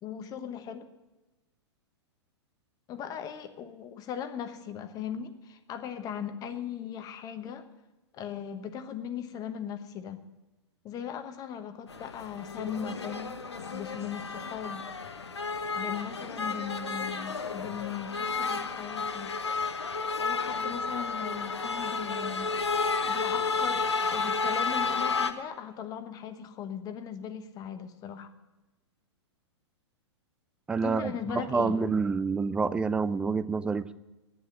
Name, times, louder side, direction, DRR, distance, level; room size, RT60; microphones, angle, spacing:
voice 1, 0.0-0.9 2.9-7.6 8.1-10.2 10.8-13.4 13.7-14.8 15.7-19.3 20.2-22.5 23.1-28.3 30.8-31.8, left 8 dB, 25° left, 8 dB, 1.1 m, -38 dB
sound 1, 11.9-25.3, left 4 dB, 70° left, 1.0 m, -32 dB
voice 2, 30.7-34.0, right 4 dB, 5° right, 14 dB, 0.4 m, -28 dB
11.5 x 9.8 x 8.7 m, 1.1 s
figure-of-eight pair, 105°, 15 cm